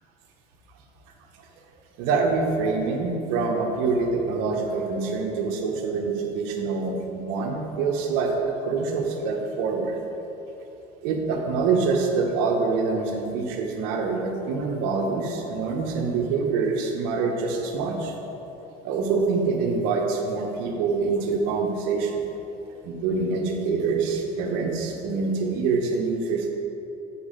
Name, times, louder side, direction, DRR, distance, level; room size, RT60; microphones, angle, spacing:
voice 1, 2.0-10.0 11.0-18.1 18.8-22.2 22.8-26.5, right 4 dB, 75° right, 2 dB, 1.1 m, -25 dB
7.1 x 5.0 x 5.2 m, 3.0 s
supercardioid pair, 100°, 20 cm